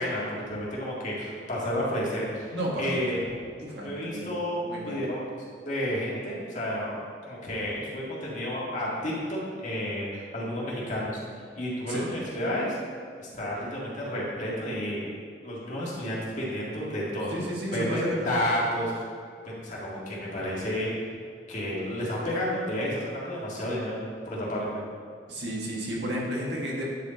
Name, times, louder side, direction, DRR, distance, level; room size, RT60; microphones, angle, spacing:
voice 1, 0.0-2.5 2.8-3.2 3.8-5.2 5.6-7.0 7.3-11.2 11.6-12.8 13.2-15.1 15.4-17.3 17.7-18.9 19.4-20.9 21.5-24.8, equal, 45° left, -6 dB, 2.0 m, -31 dB
voice 2, 2.5-3.2 3.6-5.0 11.9-12.1 17.3-18.5 25.3-26.9, equal, 75° right, -4 dB, 1.7 m, -32 dB
9.3 x 4.9 x 4.0 m, 2.1 s
head